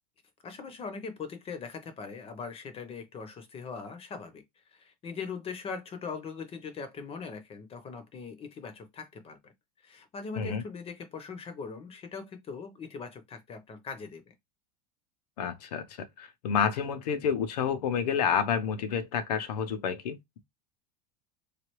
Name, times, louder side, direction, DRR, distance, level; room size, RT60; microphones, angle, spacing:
voice 1, 0.4-4.4 4.7-9.5 9.8-14.3, left 5 dB, 30° left, 0.7 m, -41 dB
voice 2, 15.4-20.2, left 7 dB, 85° left, 0.7 m, -29 dB
3.2 x 2.3 x 3.0 m
supercardioid pair, 115°, 20 cm